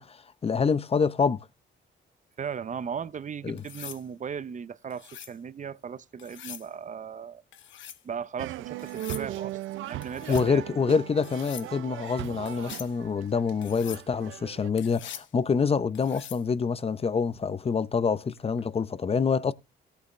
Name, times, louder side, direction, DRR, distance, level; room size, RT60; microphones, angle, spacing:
voice 1, 0.0-1.5 3.4-3.6 10.3-19.5, left 5 dB, 30° left, 0.7 m, -26 dB
voice 2, 2.4-7.4 8.0-10.6, right 7 dB, 40° right, 0.7 m, -37 dB
sound 1, 3.6-4.0 4.9-5.4 6.2-6.7 7.5-8.0 8.8-9.3 10.0-10.5 11.2-11.7 12.5-12.9 13.6-14.0 14.8-15.3 15.9-16.4 18.4-18.6, left 10 dB, 70° left, 1.0 m, -43 dB
sound 2, 8.4-14.7, right 15 dB, 85° right, 0.5 m, -38 dB
17.0 x 8.1 x 3.2 m
cardioid pair, 90°, 20 cm